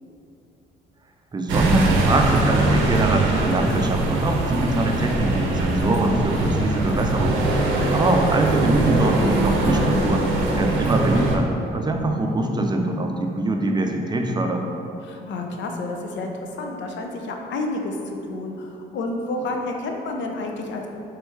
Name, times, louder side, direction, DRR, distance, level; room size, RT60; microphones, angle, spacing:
voice 1, 1.3-7.4 7.6-14.7, right 1 dB, 20° right, 3 dB, 0.5 m, -23 dB
sound 1, 1.5-11.4, right 2 dB, 90° right, 0.6 m, -22 dB
voice 2, 7.7-8.0 15.0-20.9, left 2 dB, 70° left, 2 dB, 0.6 m, -30 dB
3.4 x 3.1 x 4.6 m, 2.7 s
cardioid pair, 90°, 20 cm